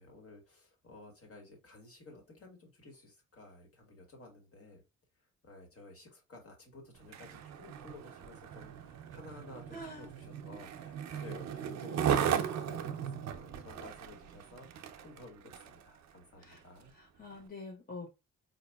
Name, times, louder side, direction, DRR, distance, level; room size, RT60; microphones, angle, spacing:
voice 1, 0.0-4.8 5.4-16.9, left 2 dB, 50° left, 2 dB, 1.6 m, -53 dB
Skateboard, 7.0-15.8 16.4-16.6, right 8 dB, 65° right, 0.6 m, -37 dB
voice 2, 9.7-10.1 16.4-16.6 16.9-18.1, left 2 dB, 30° left, -1 dB, 1.0 m, -46 dB
4.1 x 2.7 x 2.3 m, 0.27 s
cardioid pair, 90°, 30 cm